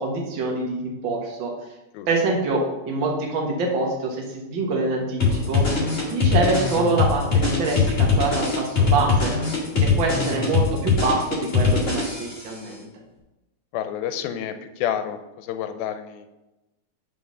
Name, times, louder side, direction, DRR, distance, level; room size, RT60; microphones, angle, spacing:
voice 1, 0.0-1.5 2.1-5.6 6.1-9.3 10.0-12.9, right 3 dB, 80° right, -1 dB, 1.0 m, -25 dB
sound 1, 5.2-12.5, left 4 dB, 40° left, 1.1 m, -21 dB
voice 2, 13.7-16.3, left 9 dB, 80° left, 9 dB, 2.4 m, -29 dB
5.6 x 5.5 x 6.5 m, 1.0 s
omnidirectional pair, 4.2 m